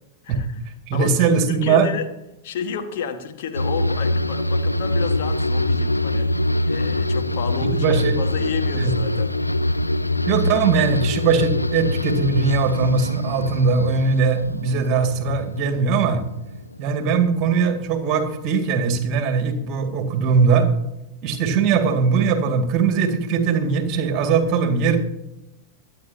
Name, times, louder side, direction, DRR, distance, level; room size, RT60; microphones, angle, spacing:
voice 1, 0.2-0.6 0.9-2.1 2.4-6.3 6.7-9.3, left 7 dB, 55° left, 6 dB, 1.4 m, -31 dB
voice 2, 0.9-1.9 7.7-8.2 8.8-8.9 10.3-16.2 16.8-20.7 21.2-25.0, right 5 dB, 40° right, 7 dB, 2.0 m, -20 dB
sound 1, 3.5-16.9 17.2-17.8, left 1 dB, 85° left, 0.5 m, -24 dB
24.5 x 9.1 x 2.8 m, 0.93 s
figure-of-eight pair, 90°, 0 cm